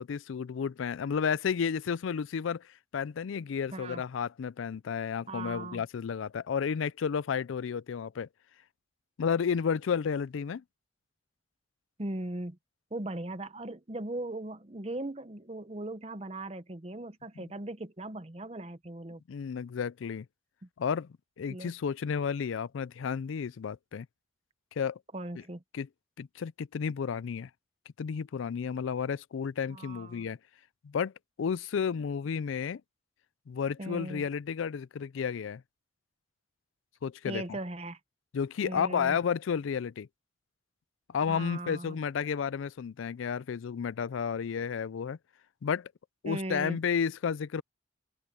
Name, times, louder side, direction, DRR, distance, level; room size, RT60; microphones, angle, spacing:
voice 1, 0.0-2.7 2.9-8.3 9.2-10.6 17.4-17.5 19.3-20.3 20.8-24.1 24.8-25.0 25.7-25.9 26.2-27.5 28.0-30.4 30.8-31.1 31.4-32.8 33.5-35.6 37.0-37.4 38.3-40.1 41.1-45.2 45.6-45.9 46.2-47.6, left 6 dB, 80° left, 0.4 m, -32 dB
voice 2, 3.7-4.0 5.3-5.8 12.0-12.6 12.9-19.2 20.6-20.7 21.5-21.7 25.1-25.6 29.7-30.3 33.8-34.2 37.2-38.0 38.6-39.2 41.3-42.0 46.2-46.8, right 2 dB, 30° right, 0.9 m, -38 dB
open air
head